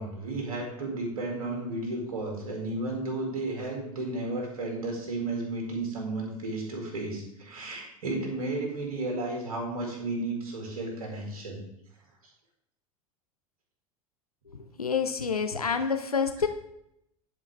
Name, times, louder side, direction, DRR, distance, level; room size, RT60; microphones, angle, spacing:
voice 1, 0.0-11.6, right 2 dB, 70° right, 0 dB, 2.2 m, -33 dB
voice 2, 14.5-16.5, left 6 dB, 90° left, 8 dB, 0.5 m, -28 dB
10.5 x 4.6 x 3.3 m, 0.77 s
figure-of-eight pair, 80°, 19 cm